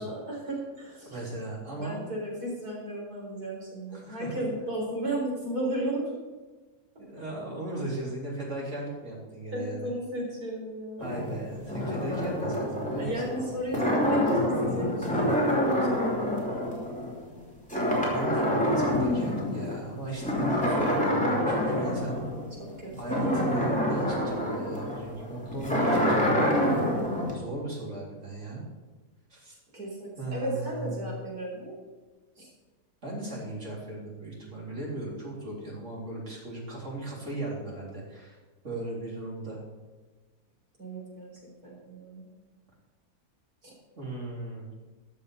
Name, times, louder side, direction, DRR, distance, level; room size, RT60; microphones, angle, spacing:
voice 1, 0.0-1.2 1.7-6.1 9.5-11.1 13.0-16.3 22.6-23.5 29.7-31.8 32.4-32.5 40.8-41.3 41.6-42.3 43.6-43.7, right 1 dB, 75° right, -3 dB, 4.9 m, -35 dB
voice 2, 1.1-2.0 3.9-4.4 7.0-9.9 11.0-13.2 18.1-22.2 23.0-26.8 27.3-28.6 29.3-29.6 30.2-31.1 33.0-38.4 38.6-39.6 44.0-44.7, right 2 dB, 50° right, -3 dB, 3.9 m, -37 dB
sound 1, 11.0-17.4 17.7-19.7 20.2-27.3, equal, 5° left, 3.0 m, -27 dB
13.0 x 6.9 x 6.9 m, 1.3 s
omnidirectional pair, 1.7 m